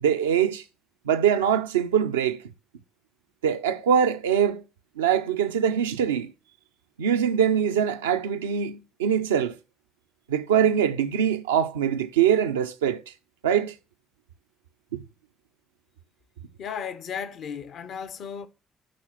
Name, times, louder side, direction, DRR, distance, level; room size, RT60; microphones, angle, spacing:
voice 1, 0.0-0.6 1.1-2.4 3.4-4.6 5.0-6.3 7.0-9.5 10.3-13.0 13.4-13.7, right 8 dB, 85° right, 0.4 m, -23 dB
voice 2, 16.6-18.5, left 7 dB, 60° left, 0.7 m, -35 dB
7.6 x 4.1 x 5.8 m
hypercardioid pair, 45°, 0 cm